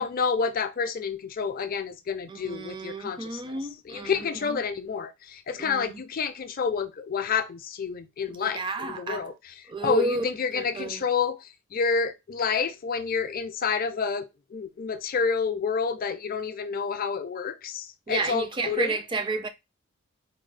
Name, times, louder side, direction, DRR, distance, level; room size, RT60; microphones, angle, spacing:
voice 1, 0.0-3.5 3.9-9.3 9.8-18.9, left 5 dB, 45° left, 0.4 m, -29 dB
voice 2, 2.3-4.6 5.6-6.0 8.3-9.3 9.7-10.3 10.5-11.0 18.1-19.5, right 3 dB, 25° right, 0.5 m, -31 dB
4.4 x 2.2 x 3.2 m
head